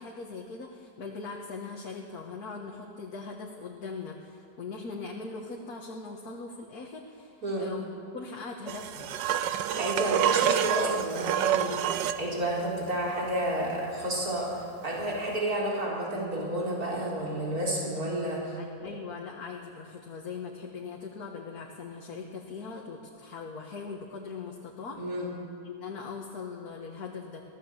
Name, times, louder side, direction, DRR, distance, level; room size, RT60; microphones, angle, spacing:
voice 1, 0.0-7.9 8.1-9.1 18.6-25.0 25.6-27.4, left 4 dB, 60° left, 0 dB, 2.0 m, -40 dB
sound 1, 8.7-12.3 15.2-15.3, right 10 dB, 90° right, 1.5 m, -27 dB
voice 2, 9.8-11.7 12.1-14.5 14.8-18.6 25.0-25.3, right 1 dB, 55° right, -4 dB, 4.8 m, -30 dB
24.0 x 16.5 x 7.3 m, 2.5 s
omnidirectional pair, 1.9 m